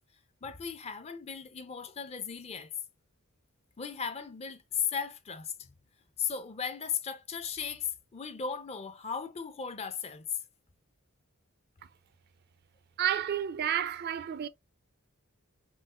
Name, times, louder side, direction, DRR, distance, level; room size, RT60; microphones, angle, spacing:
voice 1, 0.4-2.7 3.8-5.7 6.2-10.4, left 7 dB, 30° left, 0.4 m, -36 dB
voice 2, 13.0-14.5, right 9 dB, 50° right, 0.3 m, -30 dB
5.7 x 2.4 x 2.3 m
head